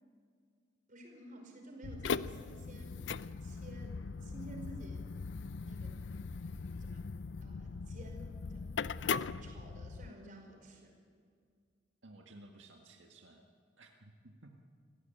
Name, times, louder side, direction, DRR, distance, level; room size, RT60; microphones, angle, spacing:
voice 1, 0.9-3.1 3.4-5.1 5.6-6.0 6.8-10.9, right 1 dB, 45° right, 3 dB, 5.2 m, -53 dB
sound 1, 1.8-10.1, left 5 dB, 75° left, 0.6 m, -40 dB
voice 2, 12.0-13.5 13.8-14.5, right 2 dB, 85° right, 1 dB, 1.9 m, -56 dB
27.0 x 16.0 x 9.2 m, 2.1 s
head